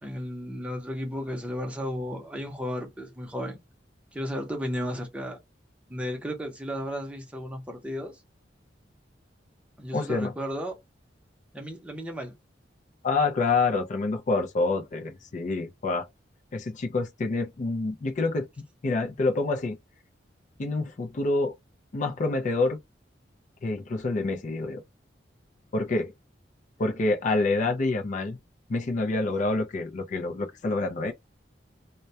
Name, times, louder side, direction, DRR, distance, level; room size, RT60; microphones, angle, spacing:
voice 1, 0.0-3.6 4.1-5.4 5.9-8.2 9.8-10.7 11.5-12.3, equal, 5° right, 0.7 m, -34 dB
voice 2, 9.9-10.3 13.0-16.1 16.5-18.5 18.8-19.8 20.6-21.5 21.9-22.8 23.6-24.8 25.7-26.1 26.8-28.4 28.7-31.1, left 3 dB, 45° left, 0.4 m, -27 dB
2.2 x 2.1 x 2.6 m
head